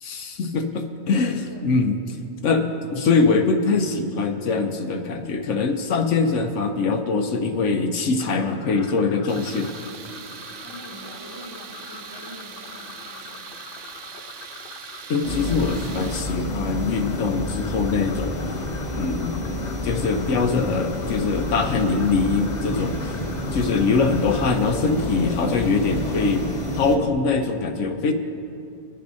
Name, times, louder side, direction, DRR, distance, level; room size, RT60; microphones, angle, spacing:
voice 1, 0.0-2.2 2.4-9.7 15.1-18.4 18.9-19.4 19.8-23.1 23.5-26.5 26.7-28.1, left 4 dB, 75° left, 5 dB, 1.0 m, -23 dB
sound 1, 8.2-24.5, left 6 dB, 55° left, 0.8 m, -43 dB
Tools, 9.3-16.2, right 7 dB, 75° right, 1.0 m, -41 dB
voice 2, 10.4-13.7, right 1 dB, 20° right, -5 dB, 2.4 m, -44 dB
sound 2, 15.2-27.0, left 1 dB, 35° left, 1.1 m, -29 dB
22.5 x 10.5 x 2.7 m, 2.6 s
omnidirectional pair, 1.3 m